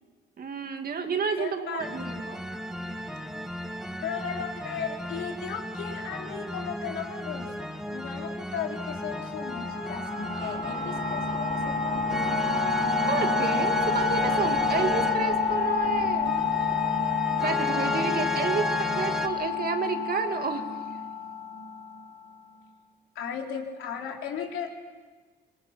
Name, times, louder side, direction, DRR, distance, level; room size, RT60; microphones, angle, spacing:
voice 1, 0.4-2.4 13.1-16.3 17.4-20.6, right 5 dB, 50° right, 5 dB, 2.6 m, -30 dB
voice 2, 1.4-2.2 4.0-11.9 23.2-24.7, left 7 dB, 85° left, 0 dB, 3.8 m, -36 dB
sound 1, 1.8-19.3, equal, 5° right, 1.8 m, -34 dB
sound 2, 8.8-22.2, left 5 dB, 35° left, 7.2 m, -29 dB
25.5 x 21.5 x 5.9 m, 1.4 s
cardioid pair, 90°, 20 cm